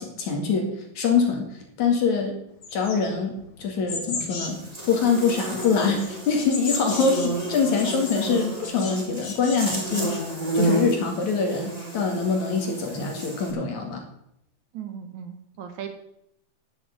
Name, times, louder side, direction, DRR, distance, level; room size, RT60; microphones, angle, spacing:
voice 1, 0.0-2.4 2.7-4.6 4.9-10.2 10.5-14.0, left 5 dB, 55° left, 2 dB, 3.3 m, -24 dB
sound 1, 2.6-4.7 5.1-8.9 9.2-10.2, left 4 dB, 40° left, 2.4 m, -36 dB
Buzz, 4.4-13.5, right 2 dB, 15° right, 2.1 m, -31 dB
voice 2, 14.7-15.9, right 8 dB, 65° right, 6 dB, 2.3 m, -37 dB
11.0 x 7.0 x 8.4 m, 0.77 s
omnidirectional pair, 4.1 m